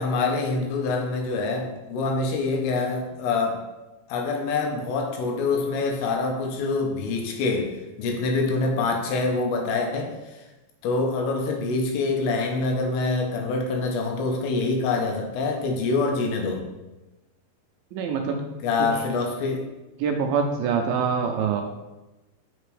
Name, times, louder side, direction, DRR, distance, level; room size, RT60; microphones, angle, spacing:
voice 1, 0.0-3.6 4.1-10.4 10.8-16.6 18.6-19.7, left 3 dB, 85° left, 2 dB, 2.9 m, -25 dB
voice 2, 17.9-18.5 18.8-18.9 20.0-21.6, right 6 dB, 80° right, 3 dB, 2.2 m, -25 dB
6.8 x 5.8 x 3.2 m, 1.1 s
omnidirectional pair, 4.5 m